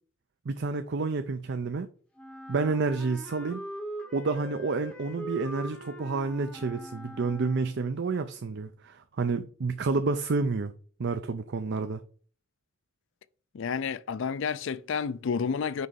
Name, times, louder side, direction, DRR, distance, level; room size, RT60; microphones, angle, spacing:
voice 1, 0.5-1.9 2.5-3.6 4.1-10.7 11.0-12.0, right 4 dB, 60° right, 0.5 m, -29 dB
Wind instrument woodwind instrument, 2.2-7.9, equal, 5° left, 1.1 m, -41 dB
voice 2, 13.5-15.9, left 6 dB, 65° left, 0.4 m, -30 dB
6.2 x 5.2 x 5.3 m
head